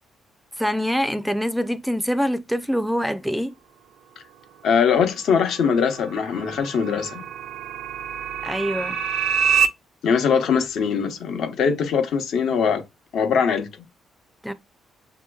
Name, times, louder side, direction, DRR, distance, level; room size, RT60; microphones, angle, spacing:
voice 1, 0.6-3.5 8.4-9.0 14.4-14.5, equal, ahead, 0.4 m, -24 dB
voice 2, 4.6-7.3 10.0-12.8 13.1-13.7, left 6 dB, 75° left, 0.9 m, -21 dB
sound 1, 5.4-9.7, right 7 dB, 75° right, 0.4 m, -26 dB
6.8 x 2.9 x 2.3 m
cardioid pair, 90°, 0 cm